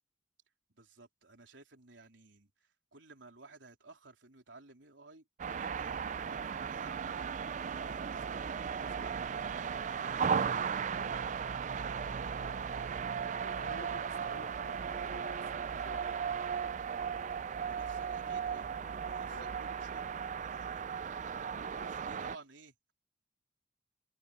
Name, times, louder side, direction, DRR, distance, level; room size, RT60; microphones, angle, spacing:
voice 1, 0.7-7.3 7.7-9.1 9.8-10.9 17.6-20.1 20.4-20.8 21.8-22.9, right 3 dB, 90° right, 3.8 m, -56 dB
sound 1, 5.4-22.4, right 6 dB, 40° right, 0.4 m, -36 dB
voice 2, 13.4-16.3 18.2-18.4 19.3-19.7 21.7-22.0, left 2 dB, 85° left, 5.4 m, -53 dB
head